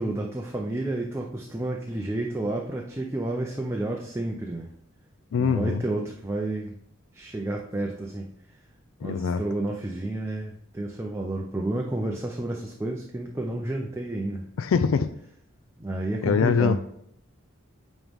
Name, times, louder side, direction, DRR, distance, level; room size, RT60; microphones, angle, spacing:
voice 1, 0.0-4.7 5.4-6.7 7.1-8.2 9.0-14.4 15.8-16.8, right 2 dB, 10° right, 0.5 m, -30 dB
voice 2, 5.3-5.8 9.0-9.4 14.6-15.2 16.2-16.8, left 6 dB, 70° left, 0.3 m, -23 dB
9.0 x 3.1 x 3.5 m
head